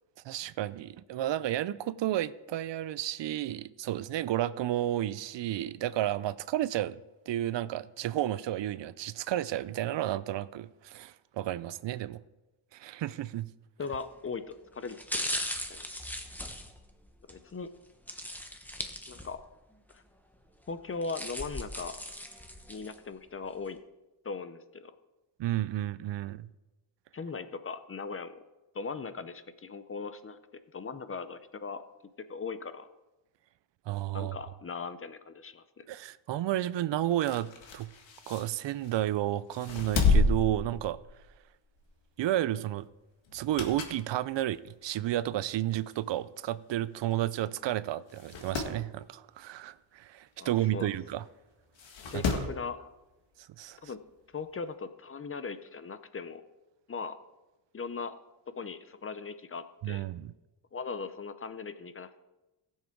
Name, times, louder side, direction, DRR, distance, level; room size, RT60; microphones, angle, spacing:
voice 1, 0.2-7.0 7.3-12.2 12.7-13.5 25.4-26.5 33.9-34.3 35.9-37.9 38.3-41.0 42.2-42.9 43.3-51.2 52.1-52.2 53.6-53.8 59.8-60.3, right 13 dB, 65° right, 0.5 m, -32 dB
voice 2, 13.8-15.4 15.7-15.9 17.3-17.7 19.1-19.4 19.9-20.0 20.7-22.0 22.7-23.8 24.2-24.9 27.1-28.4 28.7-30.4 30.7-31.8 32.3-32.9 34.1-35.9 50.4-50.9 52.1-52.9 53.8-54.0 54.3-56.4 56.9-57.2 57.7-58.1 58.5-60.0 60.7-62.2, left 4 dB, 30° left, 0.6 m, -39 dB
sound 1, 13.9-14.2 14.8-17.4 18.1-19.5 19.9-20.0 20.8-23.0 23.4-23.5, equal, 5° left, 1.0 m, -38 dB
sound 2, 37.1-39.0 39.5-41.4 41.8-42.0 43.3-44.1 44.5-44.6 45.5-45.6 45.9-46.0 46.1-46.2 47.1-47.3 47.6-47.7 48.1-48.8 50.6-50.7 51.8-52.6 53.9-54.0, left 3 dB, 70° left, 1.8 m, -30 dB
16.5 x 7.5 x 4.5 m
wide cardioid pair, 130°, 47 cm